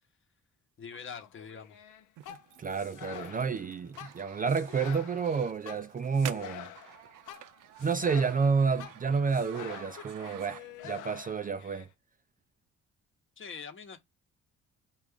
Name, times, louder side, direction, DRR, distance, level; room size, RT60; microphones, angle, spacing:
voice 1, 0.8-1.8 13.4-14.0, left 6 dB, 40° left, 1.0 m, -43 dB
sound 1, 0.9-11.9, left 10 dB, 85° left, 0.7 m, -47 dB
sound 2, 2.2-11.0, right 13 dB, 90° right, 0.5 m, -49 dB
voice 2, 2.6-6.7 7.8-11.9, right 5 dB, 30° right, 0.4 m, -30 dB
4.5 x 2.5 x 3.5 m
cardioid pair, 90°, 30 cm